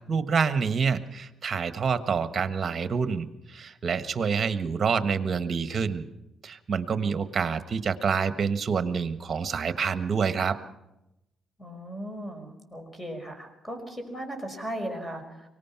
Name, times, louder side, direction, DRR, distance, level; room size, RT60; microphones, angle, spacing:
voice 1, 0.0-6.0 6.4-10.6, right 6 dB, 40° right, 10 dB, 1.4 m, -27 dB
voice 2, 11.6-15.5, equal, 15° left, 5 dB, 5.3 m, -37 dB
24.0 x 18.5 x 6.0 m, 0.91 s
cardioid pair, 90°, 0 cm